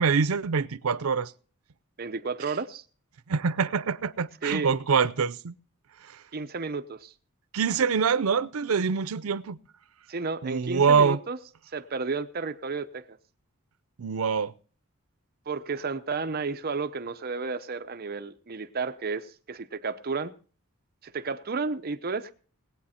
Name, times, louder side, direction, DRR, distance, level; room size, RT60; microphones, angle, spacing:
voice 1, 0.0-1.3 3.3-5.5 7.5-9.6 10.4-11.2 14.0-14.5, right 5 dB, 85° right, 0.6 m, -25 dB
voice 2, 2.0-2.8 4.4-4.7 6.3-7.1 10.1-11.4 11.7-13.2 15.5-20.3 21.0-22.3, right 4 dB, 45° right, 0.7 m, -32 dB
19.5 x 8.7 x 4.3 m
head